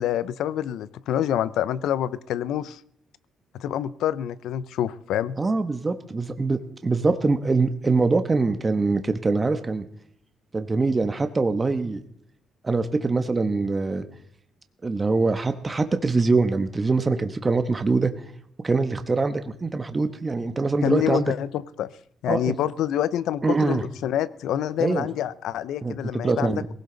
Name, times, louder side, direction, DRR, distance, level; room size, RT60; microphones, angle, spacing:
voice 1, 0.0-2.8 3.6-5.4 20.8-21.9 22.2-26.5, left 10 dB, 85° left, 17 dB, 0.6 m, -27 dB
voice 2, 5.4-9.8 10.5-12.0 12.6-14.0 14.8-18.1 18.6-21.3 22.3-22.5 23.4-23.8 24.8-25.1 25.8-26.7, right 3 dB, 25° right, 8 dB, 1.2 m, -23 dB
19.0 x 17.0 x 4.0 m, 0.71 s
cardioid pair, 90°, 0 cm